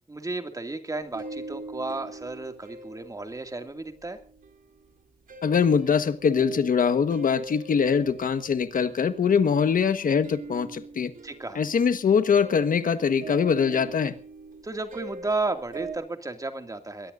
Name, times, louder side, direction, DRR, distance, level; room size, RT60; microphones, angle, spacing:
voice 1, 0.1-4.2 11.2-11.6 14.6-17.1, right 3 dB, 25° right, 2.4 m, -33 dB
sound 1, 0.9-4.9 5.3-16.0, right 3 dB, 75° right, 3.4 m, -43 dB
voice 2, 5.4-11.1 11.5-14.1, left 6 dB, 75° left, 1.4 m, -23 dB
22.0 x 19.5 x 2.6 m
wide cardioid pair, 115°, 14 cm